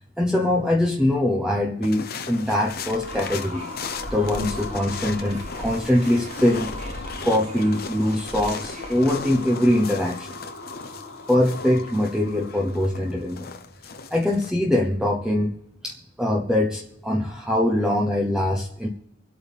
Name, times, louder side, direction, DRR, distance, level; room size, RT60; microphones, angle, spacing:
voice 1, 0.2-3.7 4.1-6.7 7.2-10.3 11.3-13.5 14.1-15.5 15.8-18.9, left 1 dB, 5° right, -1 dB, 1.0 m, -23 dB
sound 1, 1.8-14.5, left 5 dB, 50° left, 1.0 m, -38 dB
sound 2, 2.3-9.5, equal, 35° right, 2.0 m, -40 dB
sound 3, 2.6-13.4, left 3 dB, 90° left, 2.7 m, -40 dB
25.0 x 8.7 x 3.6 m, 0.84 s
head